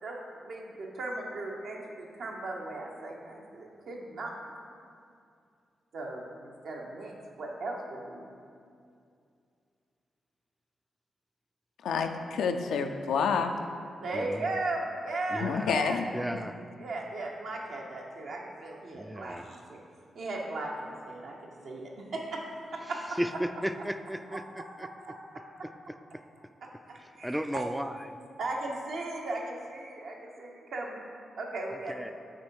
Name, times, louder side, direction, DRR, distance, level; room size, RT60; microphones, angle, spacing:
voice 1, 0.0-4.3 5.9-8.3 14.0-16.0 16.8-19.8 20.1-22.4 22.7-23.2 24.3-24.4 25.0-25.1 26.6-27.7 28.4-31.0 31.4-32.1, right 2 dB, 75° right, -1 dB, 0.9 m, -37 dB
voice 2, 11.9-13.5 15.4-16.1, left 6 dB, 80° left, 6 dB, 0.3 m, -28 dB
voice 3, 14.1-14.5 15.3-15.8 16.1-16.6 18.9-19.5 23.2-24.9 26.1-26.2 27.2-28.0 31.9-32.1, equal, 5° right, 8 dB, 0.3 m, -34 dB
6.3 x 3.6 x 4.6 m, 2.4 s
supercardioid pair, 50°, 0 cm